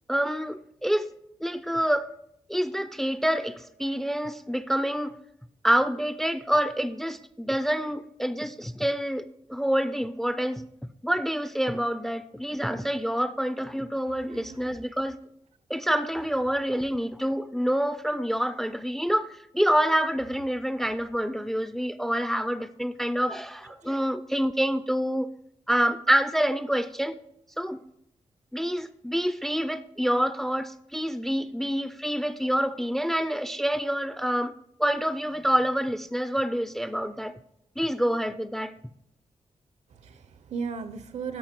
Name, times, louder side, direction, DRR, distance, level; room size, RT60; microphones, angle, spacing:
voice 1, 0.1-1.1 1.4-2.1 2.5-5.2 5.6-10.6 11.0-15.1 15.7-25.3 25.7-27.1 27.6-27.8 28.5-34.5 34.8-37.3 37.8-38.7, equal, 5° left, 0.3 m, -27 dB
voice 2, 14.0-14.8 23.8-23.9 39.9-41.4, right 5 dB, 80° right, 0.8 m, -37 dB
12.5 x 5.5 x 4.4 m
wide cardioid pair, 130°, 11 cm